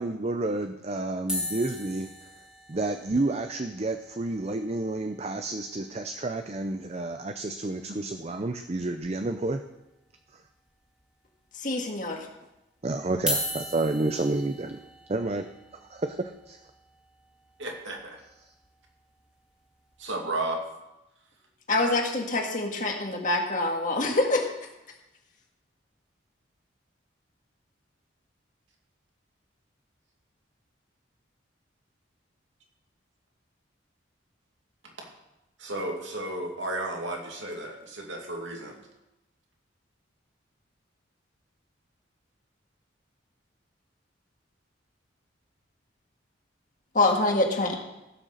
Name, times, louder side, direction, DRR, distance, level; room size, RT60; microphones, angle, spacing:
voice 1, 0.0-2.1 2.7-9.6 10.3-10.4 12.8-14.8 15.1-15.5 15.9-16.6 18.4-18.5, right 2 dB, 35° right, 7 dB, 0.5 m, -30 dB
sound 1, 1.3-5.6 5.9-6.0 6.2-6.4 6.8-6.9 8.2-8.3 9.0-9.6 10.1-10.2 11.0-11.1 13.1-19.2 19.8-20.0, left 1 dB, 5° right, 2.2 m, -38 dB
voice 2, 11.5-12.3 21.7-24.5 46.9-47.8, left 2 dB, 40° left, 1 dB, 1.8 m, -25 dB
voice 3, 17.6-18.2 20.0-20.6 35.6-38.8, right 2 dB, 75° right, 0 dB, 2.5 m, -33 dB
16.0 x 6.5 x 6.6 m, 0.96 s
head